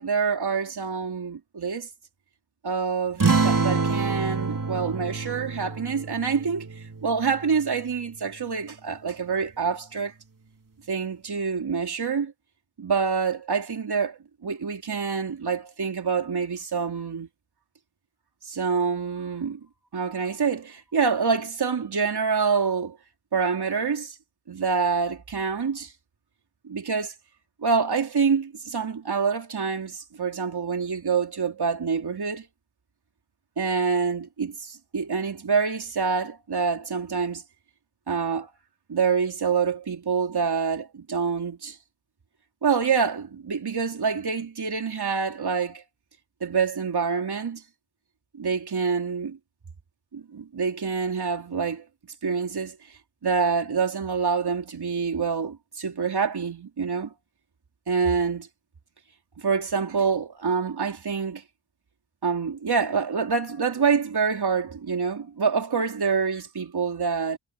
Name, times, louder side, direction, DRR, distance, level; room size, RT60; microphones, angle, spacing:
voice 1, 0.0-1.9 2.6-10.1 10.9-12.3 12.8-17.3 18.4-19.6 19.9-23.0 23.3-24.2 24.5-25.9 26.6-27.1 27.6-32.5 33.6-37.4 38.1-38.5 38.9-41.8 42.6-45.8 46.4-47.6 48.3-49.4 50.1-51.9 52.2-52.8 53.2-57.1 57.9-58.5 59.4-61.4 62.2-67.4, right 5 dB, 80° right, 3.8 m, -26 dB
sound 1, 3.2-8.2, right 4 dB, 55° right, 4.1 m, -27 dB
cardioid pair, 45°, 39 cm